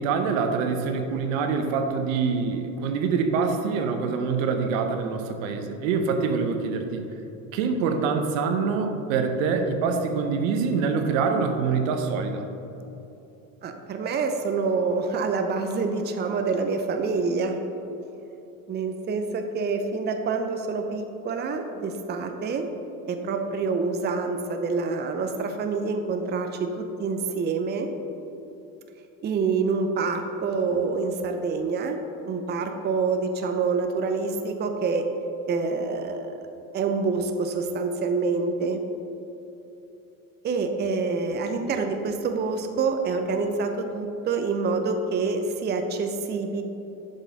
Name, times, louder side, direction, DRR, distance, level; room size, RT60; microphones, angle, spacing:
voice 1, 0.0-7.1 7.5-12.5, right 5 dB, 75° right, 6 dB, 0.8 m, -25 dB
voice 2, 13.6-17.6 18.7-22.7 23.1-27.9 29.2-32.0 32.3-35.0 35.5-36.3 36.7-38.8 40.4-46.6, right 4 dB, 25° right, 6 dB, 0.6 m, -27 dB
7.0 x 5.4 x 4.0 m, 2.9 s
hypercardioid pair, 85°, 41 cm